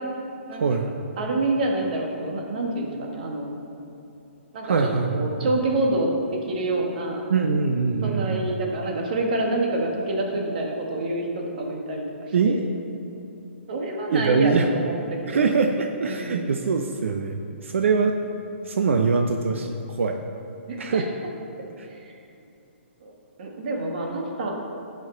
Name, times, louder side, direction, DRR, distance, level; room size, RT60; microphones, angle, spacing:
voice 1, 0.6-0.9 4.6-5.5 7.3-8.5 12.3-12.6 14.1-14.7 15.3-18.1 18.6-20.2 20.8-21.0 21.8-21.9, right 4 dB, 75° right, 4 dB, 0.6 m, -23 dB
voice 2, 1.2-3.5 4.5-7.2 8.0-12.6 13.7-15.5 16.1-16.5 20.7-21.0 21.9-22.1 23.0-23.1 23.4-24.5, right 2 dB, 40° right, 0 dB, 1.4 m, -27 dB
13.5 x 5.3 x 3.8 m, 2.8 s
hypercardioid pair, 175°, 7 cm